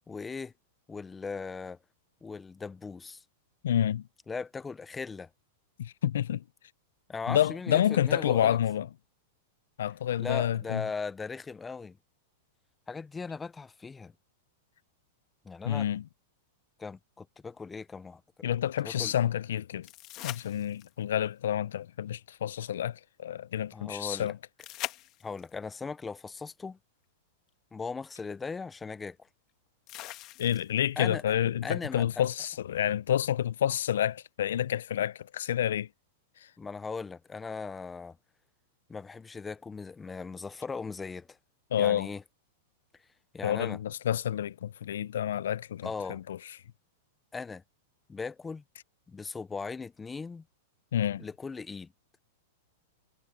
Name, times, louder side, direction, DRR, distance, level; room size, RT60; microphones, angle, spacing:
voice 1, 0.1-0.5 0.9-1.8 2.2-3.2 4.3-5.3 7.1-8.6 10.2-12.0 12.9-14.1 15.4-15.9 16.8-18.2 18.8-19.1 23.7-24.3 25.2-26.8 27.7-29.2 31.0-31.2 31.6-32.3 36.6-38.2 38.9-41.4 41.7-42.2 43.3-43.8 45.8-46.2 47.3-47.6 48.1-48.6 49.1-50.4 51.2-51.9, left 4 dB, 10° left, 0.4 m, -38 dB
voice 2, 3.6-4.0 5.8-6.4 7.3-8.9 9.8-10.8 15.6-16.0 18.4-19.9 20.2-24.4 30.4-35.9 41.7-42.1 43.4-46.4 50.9-51.2, left 10 dB, 85° left, 0.4 m, -29 dB
sound 1, 19.8-21.1 24.6-25.6 27.5-27.6 29.9-30.9 33.8-33.9, left 17 dB, 35° left, 1.4 m, -41 dB
supercardioid pair, 145°, 0 cm